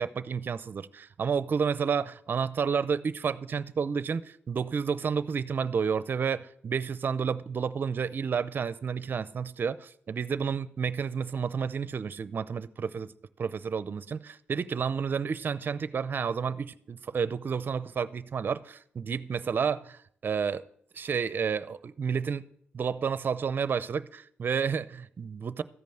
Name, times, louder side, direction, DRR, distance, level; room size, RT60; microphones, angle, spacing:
voice 1, 0.0-13.1 13.4-20.6 20.9-22.4 22.7-25.6, right 6 dB, 50° right, 0.5 m, -30 dB
14.0 x 5.3 x 7.7 m
cardioid pair, 70°, 4 cm